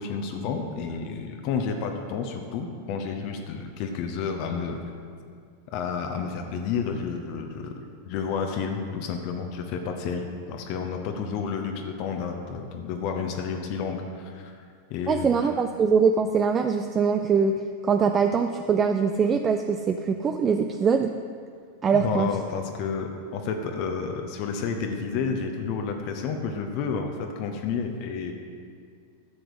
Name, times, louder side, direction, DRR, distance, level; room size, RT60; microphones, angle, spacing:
voice 1, 0.0-4.8 5.7-14.5 14.9-15.5 21.9-28.3, left 5 dB, 45° left, 4 dB, 0.9 m, -31 dB
voice 2, 15.1-17.5 17.8-21.1 21.8-22.3, right 6 dB, 25° right, 7 dB, 0.5 m, -22 dB
12.5 x 7.8 x 5.0 m, 2.2 s
figure-of-eight pair, 90°, 0 cm